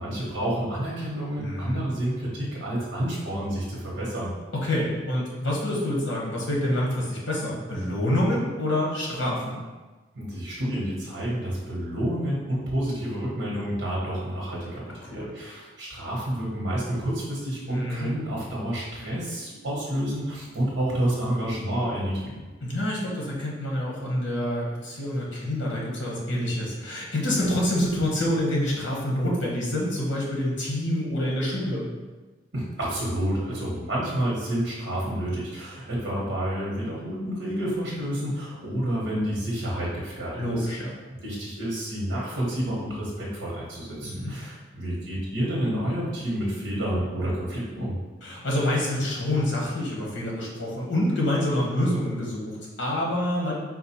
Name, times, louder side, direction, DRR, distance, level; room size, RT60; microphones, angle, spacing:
voice 1, 0.0-4.3 10.1-22.2 32.5-40.7 41.2-47.9, right 1 dB, 60° right, -5 dB, 1.1 m, -29 dB
voice 2, 1.4-1.8 4.5-9.6 15.0-15.3 17.7-18.1 22.6-31.9 40.4-40.9 44.0-44.3 48.2-53.6, left 1 dB, 80° left, -3 dB, 1.1 m, -27 dB
4.2 x 2.4 x 4.3 m, 1.3 s
head